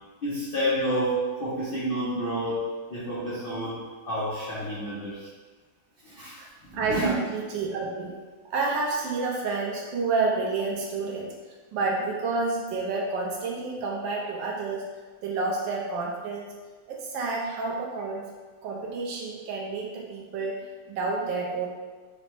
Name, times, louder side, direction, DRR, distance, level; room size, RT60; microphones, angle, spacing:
voice 1, 0.2-5.3 6.0-6.4 6.7-7.1, equal, 70° left, -9 dB, 0.5 m, -29 dB
voice 2, 6.7-8.2 8.5-11.3 11.7-14.8 15.2-16.5 16.9-18.3 18.6-21.7, right 3 dB, 85° right, -2 dB, 1.4 m, -29 dB
5.0 x 2.1 x 3.0 m, 1.4 s
omnidirectional pair, 2.0 m